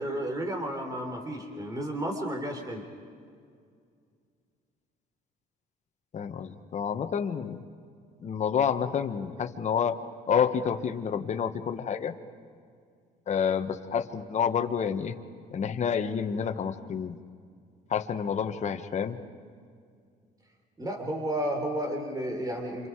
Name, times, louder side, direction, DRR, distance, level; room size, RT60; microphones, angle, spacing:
voice 1, 0.0-2.8 20.8-22.9, right 1 dB, 20° right, 3 dB, 4.1 m, -32 dB
voice 2, 6.1-7.6 8.2-10.0 10.3-12.1 13.3-15.1 15.5-17.2 17.9-19.2, left 7 dB, 45° left, 7 dB, 1.6 m, -29 dB
29.0 x 27.5 x 4.9 m, 2.2 s
cardioid pair, 110°, 17 cm